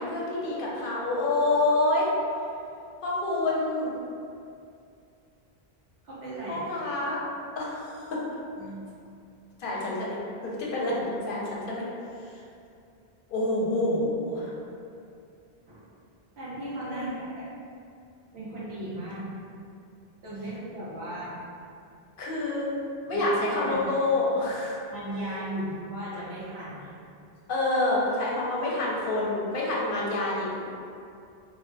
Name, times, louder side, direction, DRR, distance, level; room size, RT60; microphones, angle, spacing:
voice 1, 0.0-2.1 3.0-3.9 6.5-7.2 7.6-8.2 9.6-10.2 10.4-11.8 12.2-12.4 13.3-14.5 16.9-17.2 22.2-22.7 23.1-24.8 27.5-30.6, left 2 dB, 65° left, -5 dB, 0.7 m, -27 dB
voice 2, 6.0-6.6 8.6-8.8 15.7-15.8 16.4-17.5 18.3-19.3 20.2-21.4 23.1-23.8 24.9-26.9, right 1 dB, 90° right, -10 dB, 1.1 m, -36 dB
2.6 x 2.4 x 2.2 m, 2.5 s
omnidirectional pair, 1.0 m